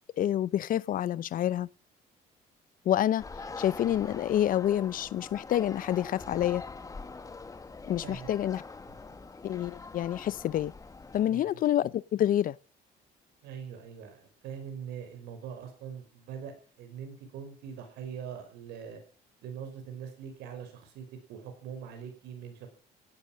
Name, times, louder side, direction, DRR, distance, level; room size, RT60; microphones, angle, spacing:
voice 1, 0.2-1.7 2.8-3.2 3.6-6.6 7.9-8.6 9.4-10.7 11.1-12.6, left 11 dB, 55° left, 0.6 m, -28 dB
sound 1, 3.2-11.2, left 4 dB, 20° left, 1.5 m, -44 dB
voice 2, 11.2-11.6 13.4-19.0 19.4-22.7, right 7 dB, 85° right, 5.6 m, -42 dB
18.0 x 12.5 x 6.2 m
cardioid pair, 110°, 17 cm